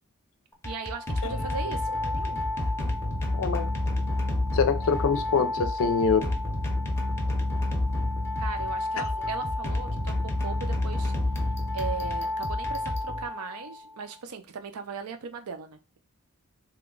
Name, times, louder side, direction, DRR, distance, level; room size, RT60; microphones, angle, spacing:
sound 1, 0.5-13.7, left 2 dB, 10° left, 0.6 m, -29 dB
voice 1, 0.6-1.9 8.4-11.1 11.7-16.0, right 5 dB, 70° right, 0.5 m, -38 dB
voice 2, 3.3-3.7 4.5-6.3, left 5 dB, 65° left, 0.5 m, -25 dB
2.9 x 2.2 x 3.7 m
head